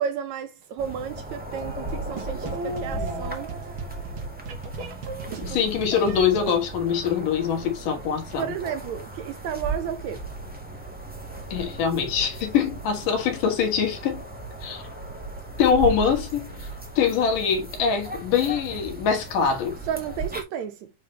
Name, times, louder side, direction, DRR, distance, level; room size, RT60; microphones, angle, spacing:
voice 1, 0.0-3.5 5.3-5.7 8.4-10.2 19.9-20.9, right 8 dB, 75° right, 1.8 m, -32 dB
sound 1, 0.8-20.4, right 2 dB, 5° right, 0.7 m, -36 dB
sound 2, 1.5-6.6, right 4 dB, 55° right, 1.4 m, -35 dB
voice 2, 2.9-3.3 5.4-8.5 11.5-14.2 14.6-14.9 15.6-16.7 17.0-19.8, left 7 dB, 80° left, 3.2 m, -24 dB
8.5 x 4.0 x 3.3 m
omnidirectional pair, 3.7 m